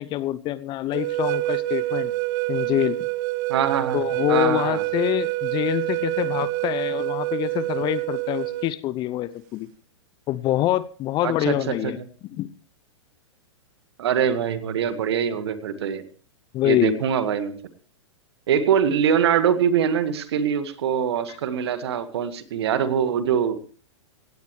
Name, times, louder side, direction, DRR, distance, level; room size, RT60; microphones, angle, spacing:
voice 1, 0.0-2.1 2.5-3.0 3.9-9.7 10.3-12.0 12.4-12.5 16.5-17.0 21.3-21.4, left 14 dB, 30° left, 17 dB, 0.7 m, -25 dB
sound 1, 0.9-8.7, right 19 dB, 40° right, 0.6 m, -27 dB
voice 2, 3.5-4.8 11.2-11.9 14.0-16.0 16.6-17.5 18.5-23.6, right 8 dB, 60° right, 11 dB, 1.9 m, -23 dB
17.5 x 17.0 x 3.3 m, 0.40 s
figure-of-eight pair, 105°, 16 cm